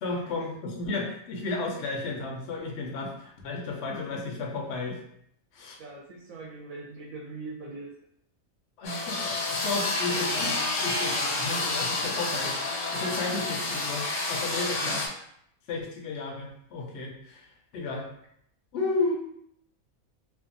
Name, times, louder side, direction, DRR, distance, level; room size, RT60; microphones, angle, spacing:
voice 1, 0.0-5.0 5.5-5.8 8.8-12.6 12.9-15.0 15.7-17.5 17.7-18.1 18.7-19.2, left 3 dB, 65° left, 0 dB, 0.7 m, -33 dB
voice 2, 5.8-7.9 10.1-10.3 14.8-15.0, right 3 dB, 75° right, -3 dB, 1.0 m, -41 dB
sound 1, 8.8-15.1, left 3 dB, 80° left, 1.1 m, -29 dB
2.6 x 2.3 x 2.5 m, 0.70 s
omnidirectional pair, 1.5 m